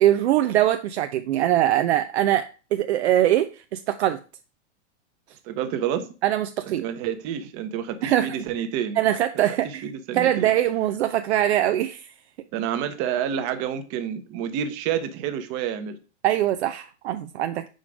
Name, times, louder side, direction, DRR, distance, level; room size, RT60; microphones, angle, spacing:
voice 1, 0.0-4.2 6.2-6.8 8.0-8.4 9.0-9.8 10.1-12.1 16.2-17.7, right 12 dB, 65° right, 0.5 m, -22 dB
voice 2, 5.4-6.1 6.6-9.0 9.3-10.5 12.5-16.0, right 9 dB, 40° right, 0.9 m, -29 dB
5.1 x 3.7 x 4.9 m
hypercardioid pair, 115°, 35 cm